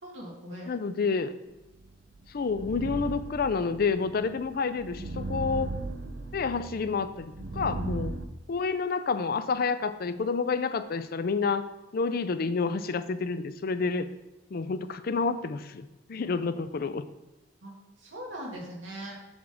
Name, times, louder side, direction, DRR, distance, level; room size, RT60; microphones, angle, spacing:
voice 1, 0.0-0.7 17.6-17.7 18.0-19.2, equal, 85° right, -2 dB, 2.3 m, -40 dB
voice 2, 0.7-1.4 2.3-5.7 6.3-8.1 8.5-11.7 11.9-14.1 14.5-17.0, left 4 dB, 50° left, 12 dB, 0.4 m, -29 dB
sound 1, 1.8-8.2, right 2 dB, 65° right, 0.7 m, -37 dB
7.2 x 3.5 x 6.3 m, 1.1 s
head